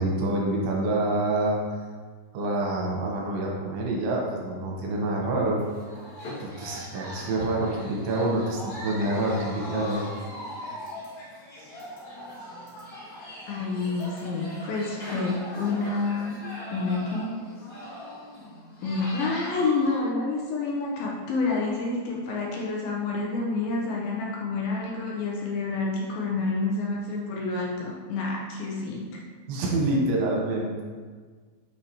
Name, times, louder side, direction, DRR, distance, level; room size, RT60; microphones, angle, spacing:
voice 1, 0.0-1.6 2.3-5.6 6.4-10.0 29.5-30.7, right 2 dB, 75° right, -2 dB, 2.8 m, -27 dB
sound 1, 5.6-20.0, left 1 dB, 55° left, 2.8 m, -40 dB
voice 2, 13.5-16.4 16.7-17.4 18.8-29.1, left 3 dB, 80° left, -3 dB, 2.4 m, -28 dB
8.2 x 4.7 x 2.9 m, 1.5 s
omnidirectional pair, 4.7 m